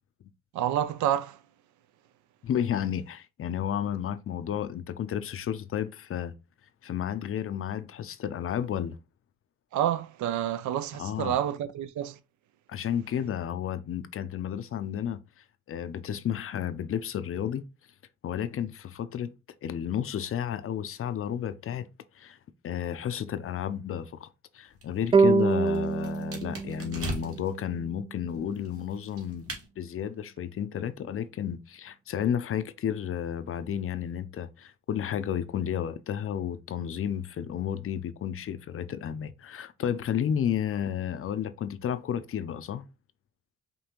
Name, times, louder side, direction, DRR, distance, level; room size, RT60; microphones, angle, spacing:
voice 1, 0.5-1.4 9.7-12.2, right 11 dB, 75° right, 0.5 m, -28 dB
voice 2, 2.4-6.3 6.8-9.0 11.0-11.4 12.7-15.2 15.7-17.7 18.2-19.3 19.6-21.9 22.2-22.4 22.6-24.3 24.5-42.9, left 9 dB, 45° left, 0.5 m, -32 dB
sound 1, 24.7-27.6 28.3-29.7, right 2 dB, 50° right, 1.6 m, -40 dB
sound 2, 25.1-28.4, right 4 dB, 20° right, 0.3 m, -26 dB
5.2 x 2.8 x 2.9 m
cardioid pair, 90°, 30 cm